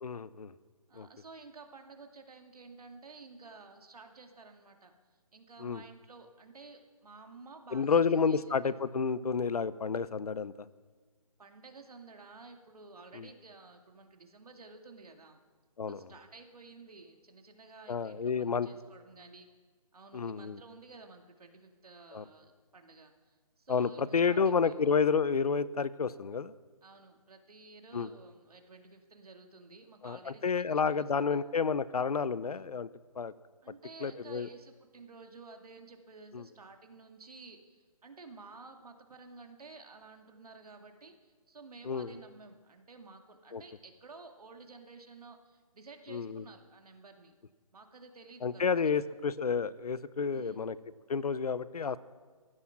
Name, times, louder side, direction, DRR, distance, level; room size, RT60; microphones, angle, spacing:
voice 1, 0.0-0.5 1.0-1.1 5.6-5.8 7.7-10.5 13.2-13.3 15.8-16.0 17.9-18.7 20.1-20.6 22.1-22.2 23.7-26.5 27.9-28.1 30.0-32.9 33.2-33.3 34.0-34.5 36.3-36.4 41.9-42.1 43.5-43.6 46.1-46.4 48.4-50.8 51.1-52.0, left 5 dB, 90° left, 18 dB, 0.8 m, -30 dB
voice 2, 0.9-4.9 5.3-8.4 11.4-15.4 15.9-19.5 19.9-24.7 26.8-31.4 33.6-47.3 47.7-49.0 50.3-50.6, right 3 dB, 80° right, 4 dB, 2.3 m, -53 dB
15.5 x 11.5 x 6.0 m, 1.4 s
hypercardioid pair, 170°, 19 cm